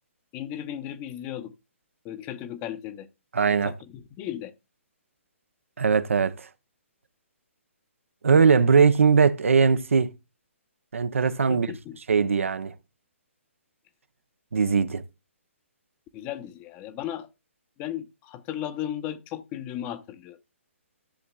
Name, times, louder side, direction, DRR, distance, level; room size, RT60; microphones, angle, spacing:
voice 1, 0.3-1.5 2.0-3.1 3.6-4.5 11.5-12.0 16.1-17.3 17.8-20.4, left 11 dB, 25° left, 0.7 m, -35 dB
voice 2, 3.3-3.7 5.8-6.5 8.2-10.1 10.9-11.7 12.1-12.7 14.5-15.0, right 5 dB, 70° right, 0.7 m, -20 dB
14.0 x 7.1 x 2.3 m
figure-of-eight pair, 130°, 7 cm